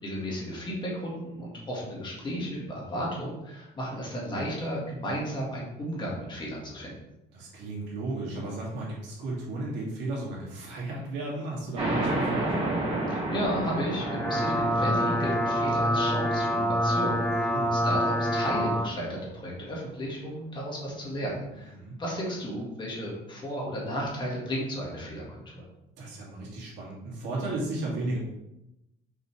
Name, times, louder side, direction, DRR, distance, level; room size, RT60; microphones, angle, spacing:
voice 1, 0.0-6.9 13.1-21.7 22.0-25.6, equal, 25° left, -3 dB, 1.8 m, -34 dB
voice 2, 7.3-12.5 17.4-17.7 21.8-21.9 26.0-28.2, right 2 dB, 80° right, -4 dB, 2.4 m, -34 dB
sound 1, 11.8-18.9, right 2 dB, 30° right, 2.2 m, -32 dB
sound 2, 13.9-18.9, equal, 5° left, 0.4 m, -26 dB
5.9 x 5.8 x 3.3 m, 0.90 s
cardioid pair, 170°, 18 cm